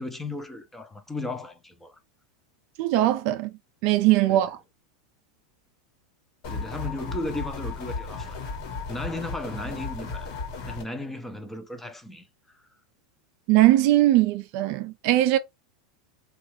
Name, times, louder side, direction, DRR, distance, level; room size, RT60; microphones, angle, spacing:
voice 1, 0.0-2.0 4.3-4.5 6.5-8.4 8.9-10.3 10.7-12.3 12.5-12.7, left 2 dB, 5° left, 0.6 m, -35 dB
voice 2, 2.8-3.5 3.8-4.6 13.5-15.4, right 15 dB, 55° right, 0.4 m, -20 dB
sound 1, 6.4-10.8, left 4 dB, 60° left, 1.2 m, -34 dB
2.9 x 2.3 x 2.9 m
hypercardioid pair, 115°, 3 cm